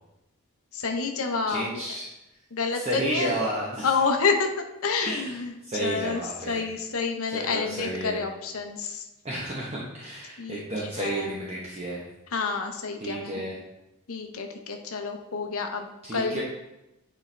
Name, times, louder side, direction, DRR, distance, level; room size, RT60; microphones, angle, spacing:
voice 1, 0.7-1.8 2.5-3.4 3.8-5.5 5.8-9.1 10.4-11.3 12.3-13.4 14.1-16.4, left 4 dB, 65° left, 4 dB, 0.7 m, -29 dB
voice 2, 1.5-2.1 2.7-3.9 5.0-6.6 7.3-8.2 9.2-12.0 13.0-13.5 16.0-16.4, right 1 dB, 30° right, -5 dB, 0.9 m, -32 dB
8.6 x 4.3 x 3.3 m, 0.94 s
head